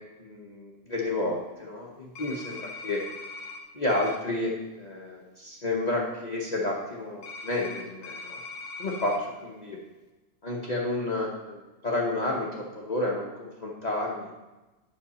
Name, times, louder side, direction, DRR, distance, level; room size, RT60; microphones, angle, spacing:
voice 1, 0.2-3.0 3.7-8.4 8.8-9.8 10.4-14.3, left 2 dB, 35° left, -3 dB, 1.0 m, -31 dB
sound 1, 2.1-3.6 3.9-4.2 7.2-9.2, left 3 dB, 80° left, 1.2 m, -40 dB
8.5 x 6.3 x 4.1 m, 1.1 s
omnidirectional pair, 1.3 m